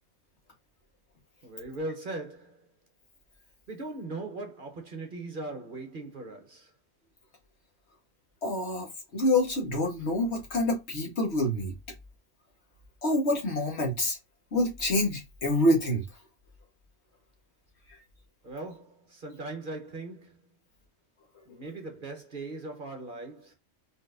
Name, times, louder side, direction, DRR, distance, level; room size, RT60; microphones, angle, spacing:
voice 1, 1.4-2.7 3.7-6.7 18.4-20.4 21.5-23.5, right 2 dB, 45° right, 1.1 m, -39 dB
voice 2, 8.4-11.7 13.0-14.2 14.5-16.0, left 1 dB, 55° left, 1.7 m, -27 dB
4.7 x 4.0 x 2.6 m
omnidirectional pair, 1.3 m